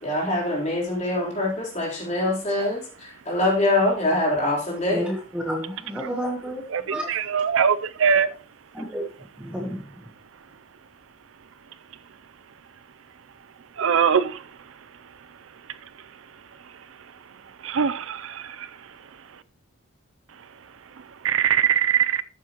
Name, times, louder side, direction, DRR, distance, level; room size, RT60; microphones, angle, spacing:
voice 1, 0.0-5.1, left 1 dB, 35° left, 3.7 m, -24 dB
voice 2, 4.9-6.6 6.9-7.1 8.7-9.0 9.4-9.8, equal, 5° right, 1.1 m, -30 dB
voice 3, 6.7-8.3 13.8-14.9 15.4-16.3 16.6-19.4 20.3-20.5 20.9-22.2, right 7 dB, 75° right, 0.5 m, -24 dB
13.5 x 7.2 x 3.0 m
head